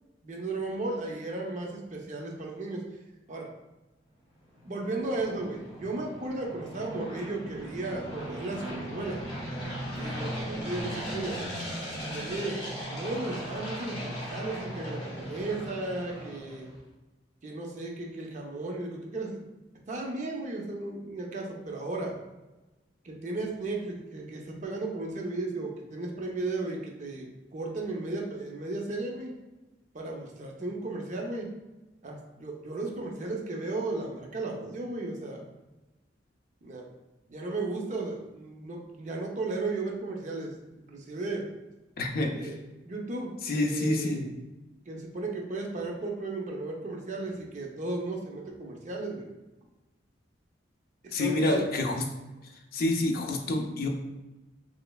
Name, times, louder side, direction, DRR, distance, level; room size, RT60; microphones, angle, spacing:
voice 1, 0.2-2.9 3.3-3.5 4.6-9.2 9.9-11.4 12.1-16.7 17.4-19.4 19.9-22.1 23.0-29.3 29.9-31.5 32.0-35.4 36.6-36.8 37.3-40.5 40.9-41.5 42.3-42.6 42.8-44.3 44.9-49.3 51.2-51.7, right 2 dB, 40° right, 0 dB, 0.5 m, -35 dB
sound 1, 4.4-16.7, equal, 25° left, 1.2 m, -38 dB
voice 2, 42.0-42.3 43.4-44.3 51.1-52.0 52.7-53.9, left 1 dB, 55° left, 3 dB, 0.5 m, -27 dB
3.1 x 3.0 x 2.2 m, 1.1 s
head